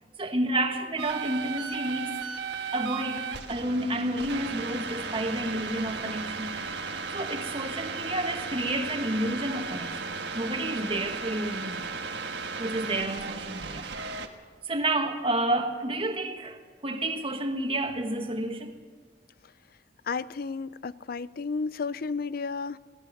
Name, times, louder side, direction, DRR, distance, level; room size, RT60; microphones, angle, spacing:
voice 1, 0.2-2.2 2.7-6.5 7.1-11.9 12.6-13.9 14.6-18.7, right 1 dB, 30° right, 1.6 m, -30 dB
sound 1, 1.0-14.3, right 5 dB, 75° right, 1.5 m, -35 dB
voice 2, 20.0-22.8, left 4 dB, 55° left, 0.5 m, -32 dB
23.5 x 17.0 x 6.6 m
head